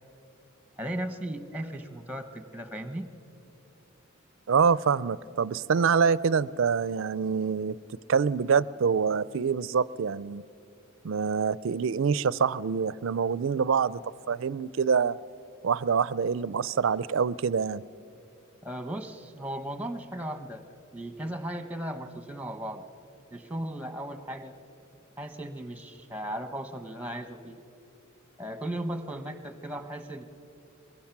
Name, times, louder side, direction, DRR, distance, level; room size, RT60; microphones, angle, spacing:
voice 1, 0.8-3.1 18.6-20.6 20.9-22.8 23.3-24.6 25.2-27.6 28.4-30.2, right 1 dB, 5° right, 9 dB, 1.0 m, -36 dB
voice 2, 4.5-7.8 8.1-10.4 11.0-14.0 14.3-15.2 15.6-17.8, right 6 dB, 65° right, 20 dB, 0.4 m, -25 dB
23.0 x 22.0 x 6.0 m, 2.7 s
head